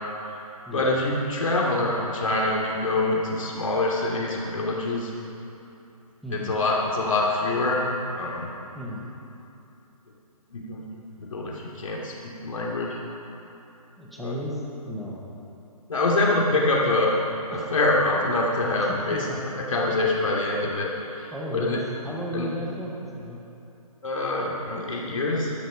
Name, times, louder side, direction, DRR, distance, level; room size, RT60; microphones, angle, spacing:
voice 1, 0.7-5.1 6.3-7.8 8.1-8.5 10.5-10.8 11.3-13.0 14.2-14.3 15.9-17.1 17.5-19.3 19.6-20.9 21.2-21.8 22.3-22.5 24.0-25.5, left 2 dB, 60° left, -3 dB, 2.8 m, -25 dB
voice 2, 6.2-6.6 8.7-9.0 14.0-15.2 17.5-17.7 18.8-19.4 21.3-23.4, equal, ahead, -5 dB, 0.4 m, -34 dB
17.0 x 12.5 x 5.3 m, 2.9 s
hypercardioid pair, 165°, 19 cm